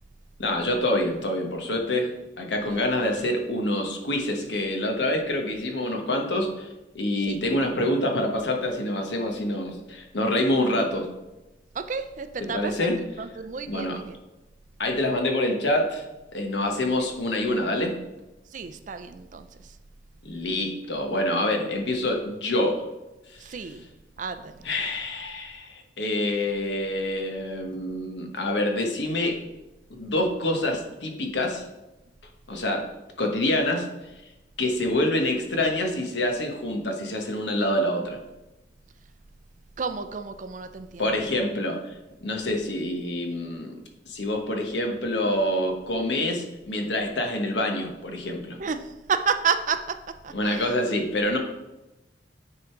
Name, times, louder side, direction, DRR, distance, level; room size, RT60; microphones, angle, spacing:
voice 1, 0.4-6.7 6.9-11.1 12.4-13.3 13.6-14.0 14.8-16.0 16.3-17.9 20.2-22.8 23.3-23.7 24.6-29.4 29.9-31.7 32.5-32.9 33.2-33.9 34.6-38.2 41.0-41.9 42.2-43.7 44.1-48.6 50.3-51.4, left 1 dB, 75° left, 2 dB, 1.3 m, -26 dB
voice 2, 11.7-12.9 13.2-14.0 18.5-19.5 23.4-23.9 24.2-24.5 39.8-41.0 48.6-48.8 49.1-50.0 50.2-50.7, right 6 dB, 45° right, 9 dB, 0.4 m, -30 dB
9.8 x 3.8 x 4.6 m, 1.0 s
head